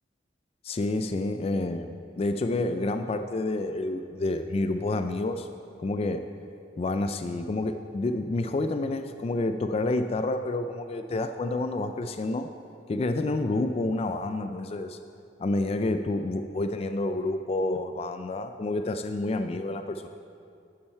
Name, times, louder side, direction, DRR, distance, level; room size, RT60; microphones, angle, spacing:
voice 1, 0.6-5.5 5.8-6.3 6.8-12.5 12.9-15.0 15.4-20.1, left 2 dB, 35° left, 8 dB, 0.3 m, -29 dB
11.5 x 8.8 x 4.4 m, 2.5 s
head